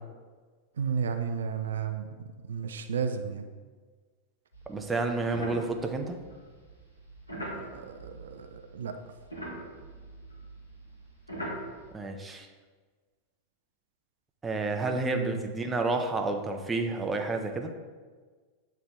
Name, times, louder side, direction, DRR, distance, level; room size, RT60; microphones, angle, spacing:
voice 1, 0.8-3.5 7.5-8.9 15.0-15.5, right 6 dB, 65° right, 7 dB, 0.4 m, -33 dB
sound 1, 4.5-8.8 9.0-11.9, right 1 dB, 85° left, 1.5 m, -41 dB
voice 2, 4.7-6.2 11.9-12.5 14.4-17.7, right 3 dB, 15° right, 4 dB, 0.6 m, -30 dB
7.9 x 3.3 x 3.5 m, 1.5 s
figure-of-eight pair, 90°, 0 cm